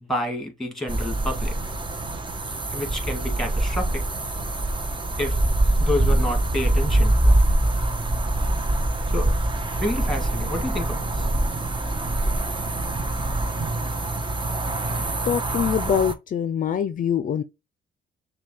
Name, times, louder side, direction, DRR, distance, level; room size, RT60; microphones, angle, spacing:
voice 1, 0.0-1.5 2.7-4.0 5.2-5.4 5.8-7.3 9.1-9.3 9.8-11.3, left 1 dB, ahead, 1.9 m, -29 dB
sound 1, 0.9-16.1, right 1 dB, 25° right, 0.8 m, -24 dB
voice 2, 15.2-17.4, left 8 dB, 45° left, 0.5 m, -24 dB
6.3 x 2.3 x 3.1 m
cardioid pair, 90°, 20 cm